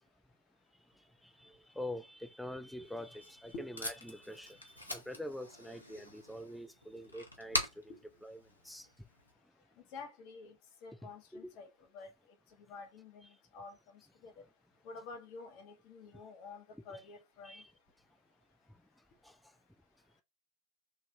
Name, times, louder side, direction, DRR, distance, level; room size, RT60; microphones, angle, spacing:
voice 1, 1.2-7.9 8.2-8.4 8.6-8.9 11.3-11.5 17.5-17.6 19.2-19.4, left 1 dB, ahead, 0.4 m, -45 dB
Packing tape duct tape, 2.8-9.3, left 1 dB, 85° left, 1.0 m, -43 dB
voice 2, 9.9-10.5 10.8-11.7 11.9-12.1 12.6-13.8 14.2-14.4 14.8-17.6, left 3 dB, 45° left, 1.1 m, -49 dB
3.3 x 2.5 x 3.5 m
figure-of-eight pair, 90°, 0 cm